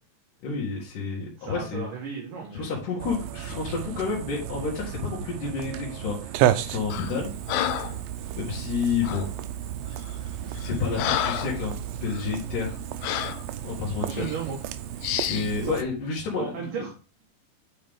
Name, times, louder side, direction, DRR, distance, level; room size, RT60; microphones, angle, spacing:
voice 1, 0.4-1.9 2.5-6.4 6.6-7.3 7.7-7.9 8.4-9.3 10.5-12.8 13.6-14.3 15.3-16.8, left 5 dB, 65° left, -5 dB, 3.1 m, -30 dB
voice 2, 1.4-2.7 14.1-14.6 15.6-15.7 16.3-16.9, right 5 dB, 65° right, -2 dB, 2.8 m, -34 dB
sound 1, 3.0-15.8, right 12 dB, 90° right, 2.4 m, -32 dB
Breathing, 6.9-7.2 7.5-8.0 9.0-9.3 10.0-10.1 10.6-11.6 12.1-12.2 13.0-13.4 14.1-14.4 15.0-15.5, left 11 dB, 85° left, 1.7 m, -29 dB
8.6 x 4.7 x 3.6 m, 0.35 s
omnidirectional pair, 4.1 m